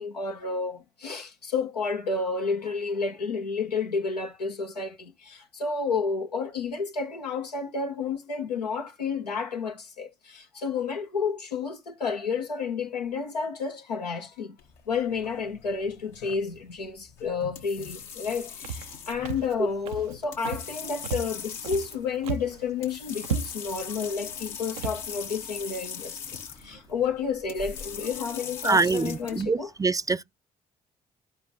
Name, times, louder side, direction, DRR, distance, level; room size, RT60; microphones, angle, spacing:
voice 1, 0.0-14.6 14.9-26.2 26.6-29.7, left 5 dB, 90° left, 0.7 m, -31 dB
sound 1, 14.6-29.4, left 7 dB, 70° left, 1.0 m, -41 dB
Walk footsteps, 18.6-19.0 19.3-19.6 19.9-20.2 20.5-20.8 21.0-22.0 22.2-22.6 22.9-23.0 23.2-23.8 24.3-24.4 24.8-25.0, right 6 dB, 80° right, 0.5 m, -34 dB
voice 2, 28.6-30.2, right 4 dB, 15° right, 0.4 m, -25 dB
13.0 x 4.8 x 2.5 m
figure-of-eight pair, 45°, 20 cm